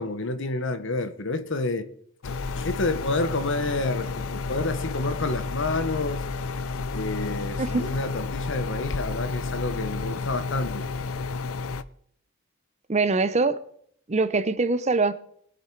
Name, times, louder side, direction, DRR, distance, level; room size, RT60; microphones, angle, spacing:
voice 1, 0.0-1.9 2.2-6.3 6.9-10.9, left 2 dB, 55° left, 1.0 m, -29 dB
sound 1, 2.2-11.8, left 3 dB, 75° left, 0.6 m, -31 dB
voice 2, 12.9-13.5 14.1-15.1, right 3 dB, 30° right, 0.6 m, -23 dB
19.5 x 8.3 x 4.6 m
head